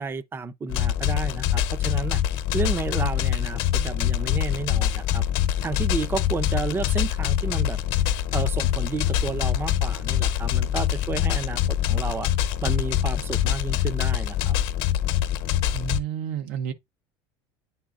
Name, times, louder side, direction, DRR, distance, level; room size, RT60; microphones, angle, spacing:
voice 1, 0.0-2.2 2.5-5.2 5.6-7.8 8.3-12.3 12.6-14.6, right 4 dB, 20° right, 0.6 m, -31 dB
sound 1, 0.7-16.0, left 11 dB, 65° left, 0.9 m, -24 dB
voice 2, 15.7-16.7, right 9 dB, 75° right, 1.0 m, -30 dB
9.3 x 4.4 x 2.5 m
supercardioid pair, 120°, 11 cm